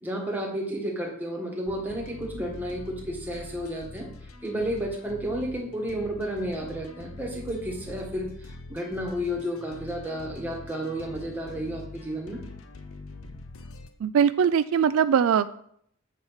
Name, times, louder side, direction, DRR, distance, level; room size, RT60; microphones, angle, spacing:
voice 1, 0.0-4.1 4.4-12.4, equal, 10° right, -1 dB, 1.4 m, -32 dB
sound 1, 1.7-13.9, left 2 dB, 75° left, 0.8 m, -44 dB
voice 2, 14.0-15.5, right 7 dB, 70° right, 13 dB, 0.3 m, -21 dB
8.0 x 4.4 x 5.6 m, 0.67 s
head